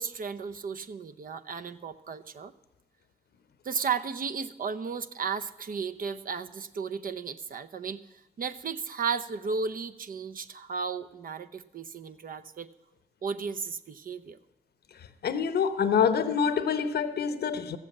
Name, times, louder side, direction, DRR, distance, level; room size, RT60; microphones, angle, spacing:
voice 1, 0.0-2.5 3.6-8.0 8.4-12.7 13.2-14.4, right 5 dB, 60° right, 0.8 m, -34 dB
voice 2, 15.2-17.8, left 7 dB, 80° left, 0.9 m, -26 dB
14.0 x 7.6 x 8.6 m
cardioid pair, 70°, 16 cm